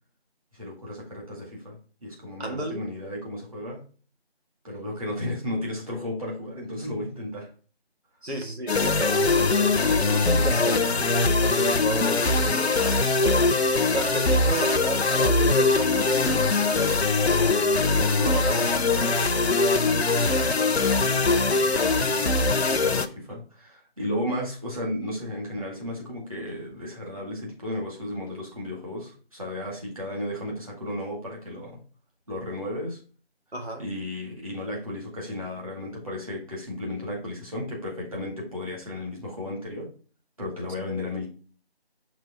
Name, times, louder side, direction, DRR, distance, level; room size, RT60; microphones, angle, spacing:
voice 1, 0.5-3.8 4.6-7.5 20.8-31.8 32.3-33.0 33.8-39.9 40.4-41.3, left 1 dB, 35° right, 2.0 m, -34 dB
voice 2, 2.4-2.8 8.2-13.5 13.9-19.3 33.5-33.8, right 1 dB, 85° right, 1.7 m, -33 dB
sound 1, 8.7-23.1, left 3 dB, 80° left, 0.7 m, -22 dB
6.0 x 3.1 x 5.1 m
figure-of-eight pair, 180°, 32 cm